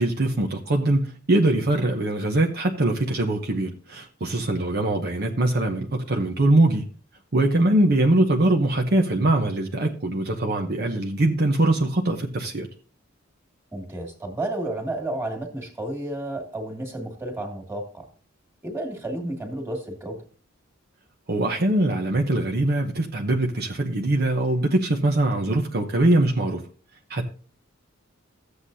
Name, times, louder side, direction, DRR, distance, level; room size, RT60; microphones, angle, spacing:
voice 1, 0.0-6.8 7.3-12.7 21.3-26.6 27.1-27.3, right 1 dB, 50° right, 0.9 m, -22 dB
voice 2, 13.7-18.1 18.6-20.2, right 1 dB, 10° right, 2.3 m, -31 dB
14.0 x 8.1 x 2.7 m
head